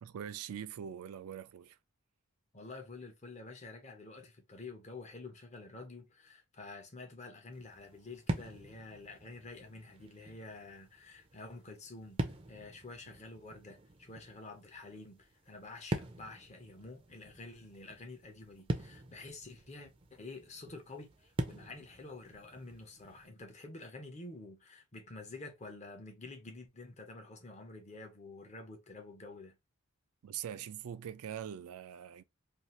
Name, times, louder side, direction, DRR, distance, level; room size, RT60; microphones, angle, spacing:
voice 1, 0.0-1.8 30.2-32.2, right 9 dB, 80° right, 0.4 m, -43 dB
voice 2, 2.5-29.6, left 3 dB, 30° left, 0.7 m, -49 dB
sound 1, 7.5-23.3, right 1 dB, 25° right, 0.4 m, -44 dB
2.7 x 2.4 x 3.1 m
head